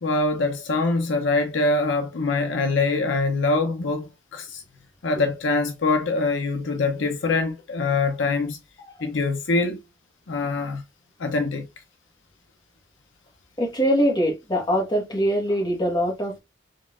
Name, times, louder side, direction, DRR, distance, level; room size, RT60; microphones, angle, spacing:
voice 1, 0.0-4.6 5.0-8.6 9.0-9.8 10.3-10.8 11.2-11.7, left 3 dB, 70° left, 0.6 m, -24 dB
voice 2, 13.6-16.4, equal, 25° left, 1.4 m, -23 dB
3.9 x 3.6 x 2.4 m
head